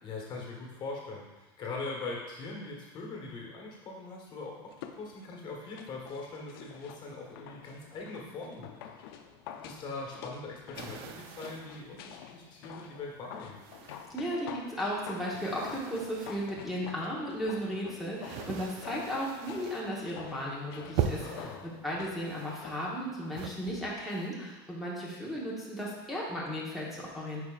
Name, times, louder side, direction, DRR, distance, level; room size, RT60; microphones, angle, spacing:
voice 1, 0.0-8.8 9.6-13.6 21.1-21.6, left 3 dB, 40° left, -1 dB, 1.4 m, -41 dB
sound 1, 4.7-23.5 23.8-23.9, left 8 dB, 80° left, 0.6 m, -48 dB
sound 2, 10.7-11.8 12.5-12.6 13.5-14.4 14.7-16.5 17.3-19.9 20.3-20.6 20.9-21.6 22.2-23.0 23.3-24.3, right 8 dB, 60° right, 0.5 m, -39 dB
voice 2, 14.1-27.4, equal, ahead, -7 dB, 1.3 m, -35 dB
8.6 x 4.7 x 2.5 m, 1.2 s
supercardioid pair, 130°, 12 cm